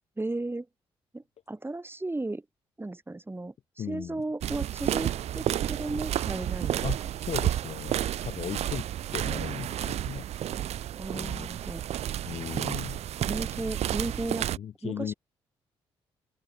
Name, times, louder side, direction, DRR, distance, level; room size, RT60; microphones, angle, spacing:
voice 1, 0.2-0.7 1.1-2.4 2.8-6.9 10.9-11.8 13.2-14.5 14.8-15.1, right 2 dB, 20° right, 2.8 m, -35 dB
voice 2, 3.8-4.2 6.8-7.0 7.3-7.9 8.2-8.9 9.1-10.2 11.1-11.5 12.2-13.0 14.6-15.1, left 9 dB, 60° left, 1.4 m, -36 dB
sound 1, 4.4-14.6, right 11 dB, 60° right, 0.5 m, -31 dB
open air
hypercardioid pair, 45°, 12 cm